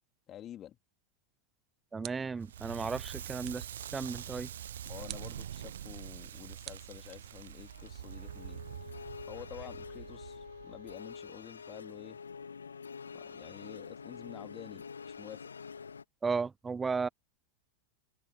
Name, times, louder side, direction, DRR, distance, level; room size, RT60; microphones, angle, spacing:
voice 1, 0.3-0.8 4.8-8.6 8.9-12.2 13.1-15.5, left 11 dB, 30° left, 3.6 m, -49 dB
sound 1, 1.3-2.5 3.4-3.8 5.1-5.4 6.6-7.5, right 17 dB, 35° right, 1.4 m, -49 dB
voice 2, 1.9-3.7 3.9-4.5 16.2-17.1, right 4 dB, 15° right, 0.9 m, -34 dB
Crackle, 2.4-11.4, right 10 dB, 60° right, 0.5 m, -45 dB
sound 2, 7.4-16.0, left 5 dB, 75° left, 2.6 m, -47 dB
figure-of-eight pair, 90°, 0 cm